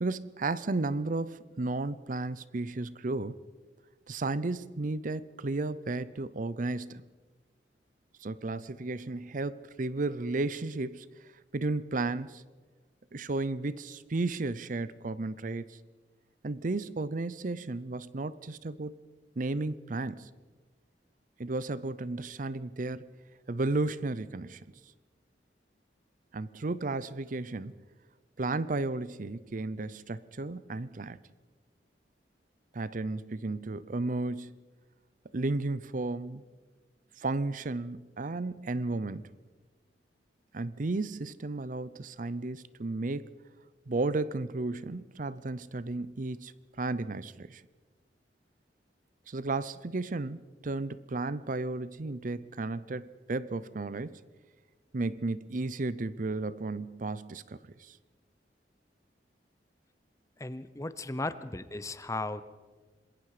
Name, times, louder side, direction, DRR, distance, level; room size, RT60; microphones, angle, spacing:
voice 1, 0.0-3.4 4.1-7.0 8.2-11.1 11.5-12.4 13.1-15.8 16.4-19.0 19.4-20.3 21.4-23.1 23.5-24.6 26.3-27.7 28.4-31.2 32.7-34.6 35.3-36.4 37.2-39.3 40.5-43.3 43.9-46.5 46.8-47.6 49.3-54.2 54.9-58.0, right 2 dB, 50° right, 0.6 m, -33 dB
voice 2, 60.4-62.4, left 2 dB, 20° left, 0.8 m, -36 dB
26.5 x 21.0 x 4.9 m
head